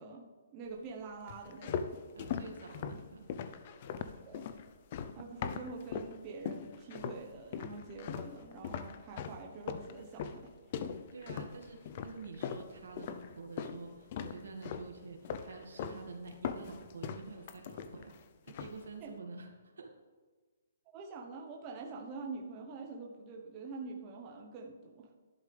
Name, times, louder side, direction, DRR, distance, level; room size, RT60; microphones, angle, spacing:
voice 1, 0.0-2.0 4.3-4.4 5.1-10.5 19.0-19.1 20.8-25.1, right 4 dB, 25° right, 0 dB, 1.1 m, -46 dB
sound 1, 1.3-6.2 6.5-7.2 7.5-13.8 14.1-14.9 15.3-16.0 16.3-18.2 18.5-18.8, left 7 dB, 40° left, 0.6 m, -40 dB
voice 2, 2.2-3.3 11.1-18.2 18.4-19.9, right 4 dB, 80° right, 2 dB, 2.2 m, -48 dB
12.0 x 11.0 x 3.4 m, 1.3 s
hypercardioid pair, 160°, 0 cm